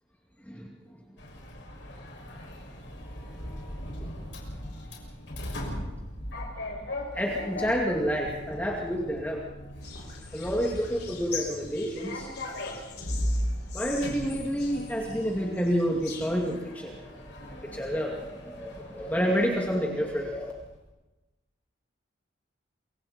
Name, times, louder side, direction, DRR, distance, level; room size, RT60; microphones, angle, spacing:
Sliding door, 1.2-20.8, left 1 dB, 70° left, 6.4 m, -38 dB
voice 1, 3.4-4.0 7.1-9.5 10.3-12.3 13.7-20.5, equal, 10° left, -1 dB, 2.3 m, -29 dB
sound 1, 9.8-16.6, left 6 dB, 55° left, 3.8 m, -43 dB
28.0 x 24.0 x 4.4 m, 1.1 s
head